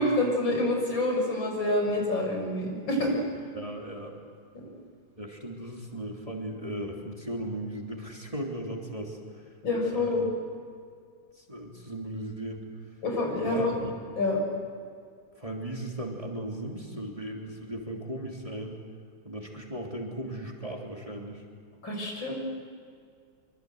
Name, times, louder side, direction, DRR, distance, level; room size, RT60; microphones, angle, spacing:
voice 1, 0.0-3.1 9.6-10.3 13.0-13.7 14.2-14.4 21.8-22.3, left 1 dB, 90° left, 1 dB, 7.0 m, -27 dB
voice 2, 3.5-4.1 5.2-9.4 9.8-10.3 11.3-12.6 13.4-13.9 15.4-18.8 19.2-21.4, right 1 dB, 15° right, 0 dB, 3.2 m, -37 dB
25.0 x 24.5 x 8.0 m, 2.1 s
omnidirectional pair, 2.0 m